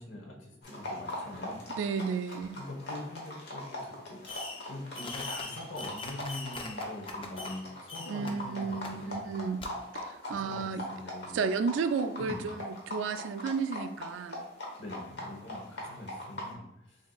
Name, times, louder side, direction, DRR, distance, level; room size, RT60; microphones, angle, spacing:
voice 1, 0.0-1.6 2.5-4.2 4.7-9.2 10.2-11.4 12.2-12.5 14.8-17.0, left 1 dB, 85° left, 0 dB, 1.0 m, -43 dB
sound 1, 0.6-16.5, left 1 dB, 60° left, 1.1 m, -42 dB
voice 2, 1.7-2.6 8.1-9.7 9.9-10.9 11.3-14.5, right 5 dB, 85° right, 10 dB, 0.3 m, -33 dB
Fireworks, 4.3-4.7 4.9-7.6 7.9-8.3 8.8-8.9 9.6-9.7, left 3 dB, 25° left, 0.4 m, -40 dB
6.5 x 2.7 x 2.3 m, 0.82 s
head